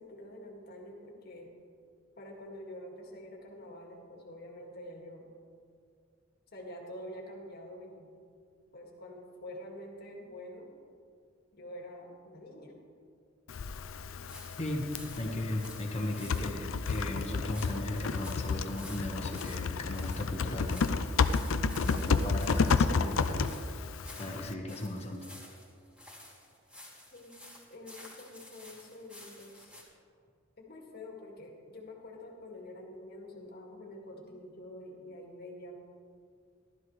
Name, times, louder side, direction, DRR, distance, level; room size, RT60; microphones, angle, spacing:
voice 1, 0.0-1.5 2.2-5.3 6.5-8.1 8.7-10.7 11.5-12.7 27.1-27.4 27.7-29.8 30.6-35.8, left 1 dB, 50° left, 0 dB, 2.0 m, -47 dB
Typing, 13.5-24.5, left 4 dB, 75° left, 0.5 m, -31 dB
sound 1, 14.3-29.8, left 1 dB, 5° right, 2.6 m, -52 dB
voice 2, 15.2-21.1 21.8-23.4 24.2-25.3, left 1 dB, 30° left, 0 dB, 1.4 m, -36 dB
15.0 x 12.5 x 3.2 m, 2.3 s
head